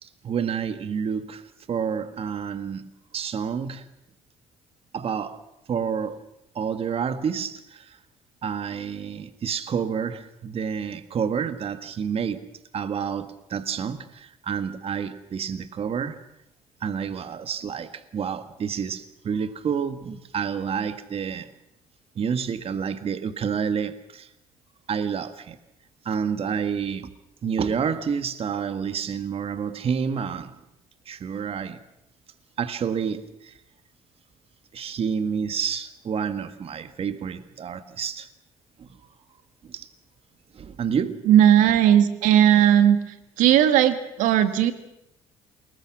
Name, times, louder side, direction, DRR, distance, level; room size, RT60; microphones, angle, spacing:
voice 1, 0.0-3.9 4.9-5.4 5.7-6.2 6.5-8.0 8.4-16.2 16.8-21.5 22.1-24.3 24.9-25.6 26.0-27.1 27.4-30.5 31.0-31.8 32.6-33.6 34.7-38.3 38.8-38.9 39.6-39.9 40.5-41.2, right 7 dB, 50° right, 1.7 m, -29 dB
voice 2, 41.3-43.0 43.4-44.7, right 10 dB, 80° right, 1.9 m, -17 dB
29.0 x 21.0 x 6.1 m
supercardioid pair, 80°, 13 cm